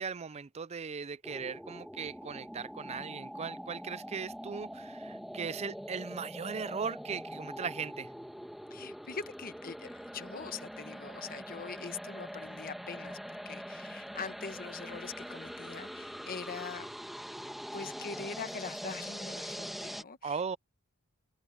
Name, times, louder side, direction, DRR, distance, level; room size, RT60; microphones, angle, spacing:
voice 1, 0.0-8.1 20.2-20.6, right 6 dB, 30° right, 0.5 m, -38 dB
sound 1, 1.2-20.0, equal, ahead, 1.6 m, -43 dB
voice 2, 8.7-16.9 17.7-20.6, left 5 dB, 40° left, 1.1 m, -43 dB
head